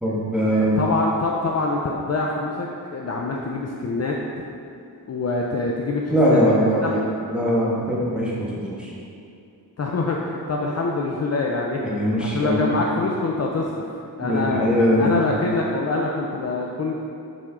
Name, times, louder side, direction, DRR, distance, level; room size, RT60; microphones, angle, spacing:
voice 1, 0.0-0.8 6.1-7.0 7.3-8.9 11.7-12.7 14.2-15.2, equal, ahead, -6 dB, 1.4 m, -21 dB
voice 2, 0.5-4.2 5.1-6.4 6.8-7.0 9.8-11.8 12.2-14.7 15.0-16.9, left 3 dB, 40° left, -1 dB, 0.5 m, -25 dB
7.1 x 4.4 x 3.6 m, 2.5 s
wide cardioid pair, 105°, 39 cm